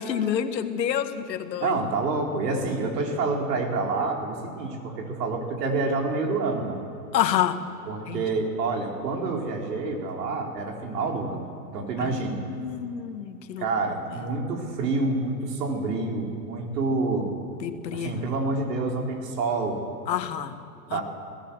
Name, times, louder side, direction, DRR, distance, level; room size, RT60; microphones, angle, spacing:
voice 1, 0.0-1.7 7.1-7.6 8.1-8.2 12.0-12.1 12.5-13.6 17.6-18.2 20.1-20.6 20.9-21.0, left 9 dB, 80° left, 9 dB, 1.7 m, -28 dB
voice 2, 1.6-6.8 7.9-11.4 11.7-12.4 13.6-17.3 17.9-19.8 20.9-21.0, right 3 dB, 75° right, 1 dB, 4.3 m, -27 dB
21.5 x 17.0 x 7.2 m, 2.9 s
hypercardioid pair, 125°, 49 cm